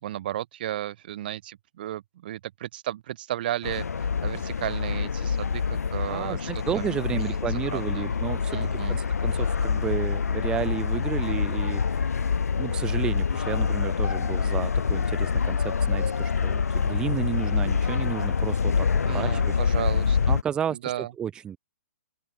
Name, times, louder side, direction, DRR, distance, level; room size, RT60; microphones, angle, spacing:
voice 1, 0.0-7.4 7.7-8.1 8.5-9.0 19.1-20.4 20.7-21.1, right 13 dB, 35° right, 5.3 m, -34 dB
sound 1, 3.6-20.4, left 6 dB, 90° left, 3.6 m, -26 dB
voice 2, 6.1-12.0 12.6-18.9 19.1-19.6 20.3-21.6, right 8 dB, 10° right, 3.9 m, -32 dB
open air
hypercardioid pair, 170°, 8 cm